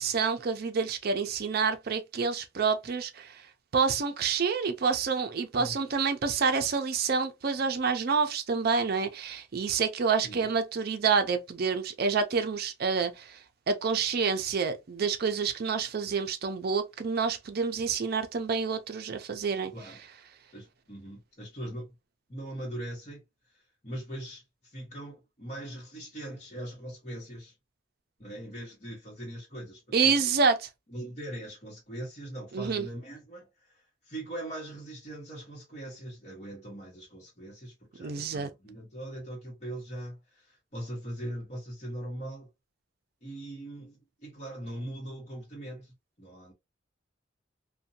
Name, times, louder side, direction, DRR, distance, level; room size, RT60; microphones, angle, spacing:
voice 1, 0.0-3.3 3.7-13.2 13.7-19.7 29.9-30.7 32.5-32.9 38.0-38.5, right 5 dB, 55° right, 0.5 m, -28 dB
voice 2, 10.2-10.6 19.7-20.0 20.5-21.9 22.3-23.2 23.8-27.5 28.2-30.3 30.9-33.5 33.7-42.5 43.2-45.9 46.2-46.5, right 1 dB, 40° left, 1.1 m, -41 dB
2.6 x 2.2 x 2.6 m
head